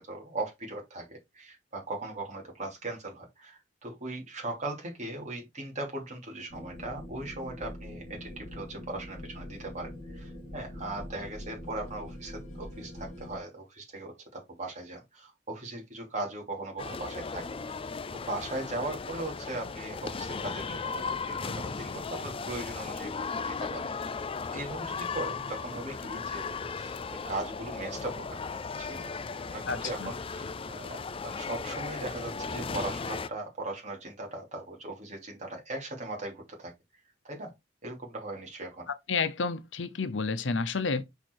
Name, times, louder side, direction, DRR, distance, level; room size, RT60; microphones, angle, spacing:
voice 1, 0.0-17.8 18.1-23.8 24.2-26.9 27.2-28.2 28.8-29.1 29.5-36.7 37.2-37.5 37.8-38.9, right 2 dB, 40° right, 3.2 m, -39 dB
sound 1, 6.5-13.4, left 1 dB, 50° left, 2.5 m, -43 dB
sound 2, 16.8-33.3, left 4 dB, 30° left, 0.5 m, -36 dB
voice 2, 29.7-30.1 39.1-41.0, left 4 dB, 90° left, 0.8 m, -30 dB
5.7 x 4.5 x 4.6 m
head